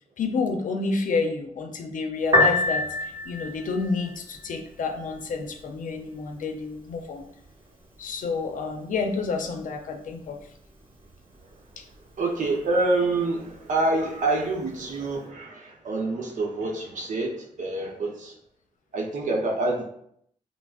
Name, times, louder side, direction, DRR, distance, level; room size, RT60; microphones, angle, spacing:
voice 1, 0.2-7.3 8.0-10.4 11.8-11.9, left 4 dB, 70° left, 5 dB, 0.6 m, -29 dB
Piano, 2.2-15.2, left 2 dB, 35° right, 1.1 m, -32 dB
voice 2, 12.2-18.3 18.9-19.8, right 2 dB, 65° right, 0 dB, 0.7 m, -27 dB
5.8 x 2.0 x 2.4 m, 0.70 s
cardioid pair, 65°, 14 cm